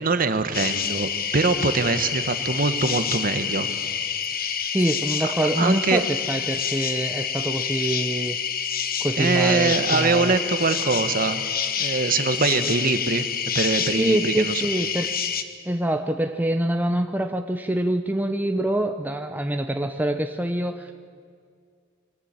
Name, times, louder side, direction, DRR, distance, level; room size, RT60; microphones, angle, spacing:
voice 1, 0.0-3.7 5.6-6.0 9.2-11.5 11.8-13.3 13.5-14.6, right 3 dB, 45° right, 10 dB, 1.1 m, -23 dB
sound 1, 0.5-15.4, left 7 dB, 45° left, 1.1 m, -28 dB
voice 2, 4.7-8.4 9.0-10.3 14.0-15.1 15.6-20.9, right 1 dB, 10° right, 6 dB, 0.7 m, -25 dB
22.5 x 15.0 x 8.7 m, 2.1 s
head